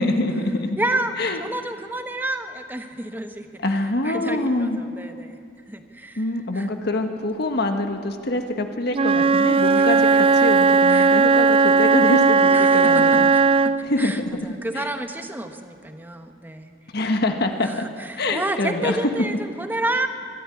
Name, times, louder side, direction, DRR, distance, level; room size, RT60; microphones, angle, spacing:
voice 1, 0.0-0.8 1.2-1.4 3.6-4.8 6.2-13.3 13.8-14.3 14.7-14.9 16.9-17.7 18.2-19.0, left 2 dB, 55° left, 5 dB, 1.4 m, -25 dB
voice 2, 0.8-1.1 1.4-3.5 4.0-5.4 5.7-6.2 6.5-6.7 9.7-9.8 10.9-11.1 12.5-13.7 14.0-14.2 14.6-16.7 17.6-20.1, right 1 dB, 10° right, 6 dB, 1.2 m, -29 dB
Wind instrument woodwind instrument, 8.9-13.9, right 4 dB, 30° right, 0.4 m, -17 dB
23.5 x 13.5 x 9.8 m, 2.3 s
head